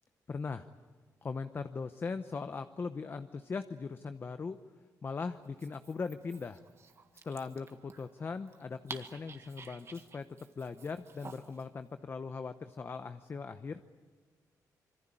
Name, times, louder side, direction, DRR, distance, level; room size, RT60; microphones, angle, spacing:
voice 1, 0.3-0.7 1.2-4.6 5.0-6.6 7.2-10.3 10.6-13.8, left 4 dB, 35° left, 10 dB, 0.8 m, -39 dB
Dog, 5.4-11.7, right 5 dB, 40° right, 1.7 m, -51 dB
26.0 x 23.5 x 8.9 m, 1.4 s
cardioid pair, 115°, 7 cm